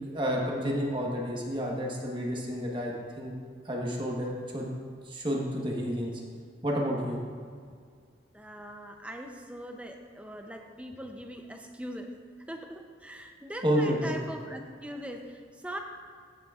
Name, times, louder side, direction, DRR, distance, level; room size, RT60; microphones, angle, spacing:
voice 1, 0.0-3.4 3.6-4.7 5.0-6.2 6.6-7.2 13.6-14.1, equal, 25° right, -2 dB, 1.2 m, -30 dB
voice 2, 8.3-12.1 12.5-15.8, right 1 dB, 5° right, 4 dB, 0.6 m, -41 dB
14.5 x 6.7 x 2.4 m, 2.1 s
head